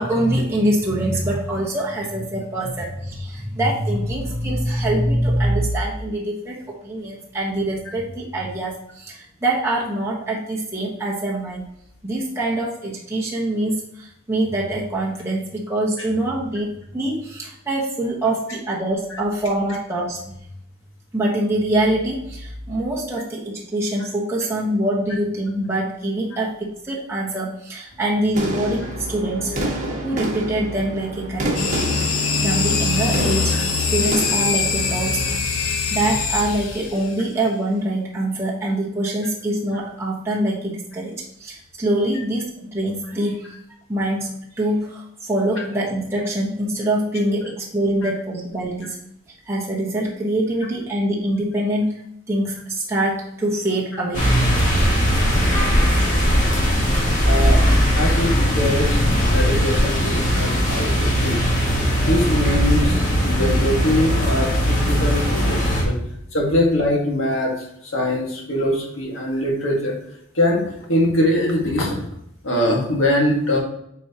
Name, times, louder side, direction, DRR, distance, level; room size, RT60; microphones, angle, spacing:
voice 1, 0.0-11.6 12.0-20.2 21.1-29.6 30.0-33.6 33.9-35.2 35.5-43.4 43.9-44.3 44.6-45.0 45.3-48.9 49.5-51.9 52.3-54.2, right 1 dB, 10° right, -5 dB, 1.1 m, -24 dB
sound 1, 28.3-35.3, right 1 dB, 35° right, 1.5 m, -29 dB
sound 2, 31.5-37.1, left 4 dB, 85° left, 1.0 m, -23 dB
sound 3, 54.1-65.8, equal, 35° left, 1.8 m, -19 dB
voice 2, 57.2-57.6 57.9-59.0 59.3-61.4 62.0-66.0 66.3-70.0 70.3-72.0 72.4-73.6, left 1 dB, 65° left, -1 dB, 1.7 m, -22 dB
8.1 x 4.7 x 2.9 m, 0.76 s
head